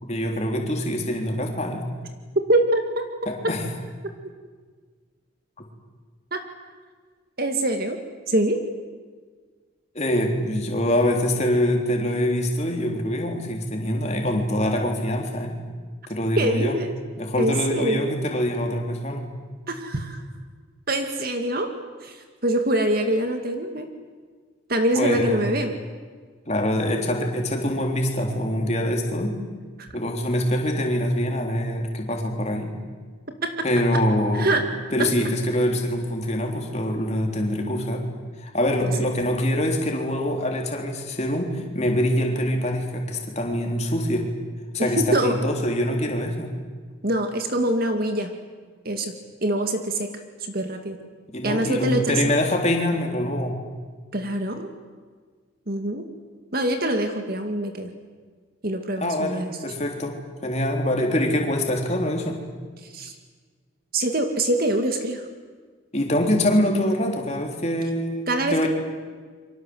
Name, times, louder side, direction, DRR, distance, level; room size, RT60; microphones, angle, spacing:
voice 1, 0.0-1.8 3.3-3.6 9.9-15.6 16.1-16.7 17.2-19.3 25.0-25.5 26.5-29.4 29.9-32.7 33.6-34.5 34.9-38.0 38.4-44.3 44.7-46.5 51.3-53.6 59.0-60.2 60.4-62.4 65.9-68.7, left 1 dB, 35° left, 2 dB, 3.6 m, -24 dB
voice 2, 2.5-3.1 6.3-6.4 7.4-8.0 8.3-8.6 16.4-16.9 17.4-18.1 19.7-20.2 20.9-21.7 22.0-23.9 24.7-25.7 29.8-29.9 33.4-33.6 34.3-34.6 35.0-35.1 38.8-38.9 44.8-45.4 47.0-48.3 48.8-49.1 49.4-50.1 50.4-51.0 51.4-52.2 54.1-54.7 55.7-56.1 56.5-57.9 58.6-59.6 62.8-63.2 63.9-65.2 68.3-68.7, right 1 dB, 45° right, 5 dB, 2.1 m, -24 dB
28.5 x 24.5 x 7.9 m, 1.6 s
head